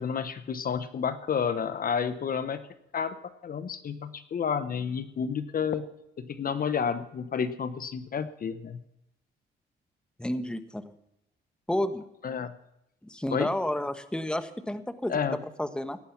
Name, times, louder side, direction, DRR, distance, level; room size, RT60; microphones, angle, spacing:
voice 1, 0.0-2.6 2.9-3.2 3.4-5.9 6.2-8.8 12.2-12.5 13.3-13.5 15.1-15.4, left 7 dB, 45° left, 12 dB, 1.0 m, -30 dB
voice 2, 10.2-10.9 11.7-12.1 13.0-15.2 15.6-16.0, left 1 dB, 5° left, 10 dB, 1.2 m, -31 dB
17.5 x 11.0 x 5.9 m, 0.86 s
cardioid pair, 90°, 20 cm